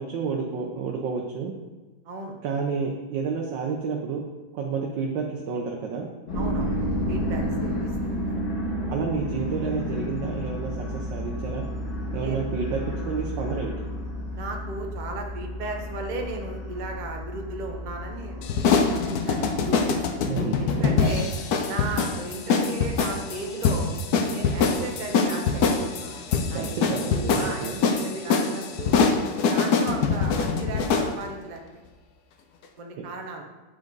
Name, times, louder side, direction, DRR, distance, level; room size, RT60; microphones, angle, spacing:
voice 1, 0.0-1.5 2.4-4.2 4.5-6.1 8.9-11.7 12.1-13.7 20.2-21.1 26.5-27.8 33.0-33.1, right 5 dB, 70° right, 0 dB, 1.4 m, -30 dB
voice 2, 2.0-2.3 6.3-6.7 7.1-8.4 12.2-12.4 14.3-18.5 18.9-20.0 20.6-21.3 21.7-23.9 24.3-25.7 26.0-26.9 27.4-29.0 29.5-31.8 32.8-33.4, right 3 dB, 45° right, 2 dB, 0.6 m, -36 dB
sound 1, 6.3-20.3, equal, 85° left, 2.6 m, -31 dB
sound 2, 18.4-31.1, left 5 dB, 65° left, 1.0 m, -24 dB
8.5 x 5.1 x 3.9 m, 1.2 s
omnidirectional pair, 2.1 m